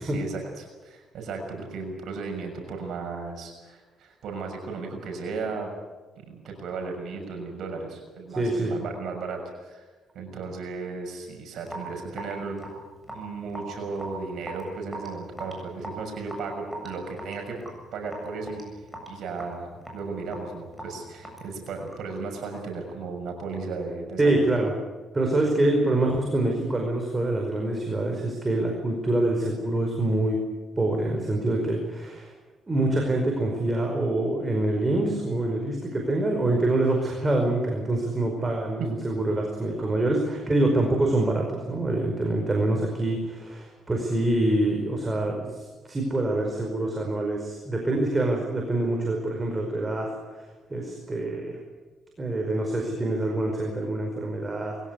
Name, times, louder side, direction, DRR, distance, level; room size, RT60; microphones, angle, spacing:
voice 1, 0.0-5.7 6.2-9.8 10.1-12.6 13.1-17.6 17.9-18.6 19.1-24.5, right 4 dB, 70° right, 2 dB, 6.4 m, -35 dB
voice 2, 8.3-8.7 24.2-24.7 25.1-30.4 30.8-32.3 32.7-50.1 50.7-51.6 52.2-54.8, right 2 dB, 25° right, 1 dB, 5.0 m, -25 dB
Raindrop / Drip, 11.6-22.2, right 1 dB, 5° right, 7.7 m, -41 dB
22.0 x 16.5 x 9.8 m, 1.3 s
cardioid pair, 90°, 0 cm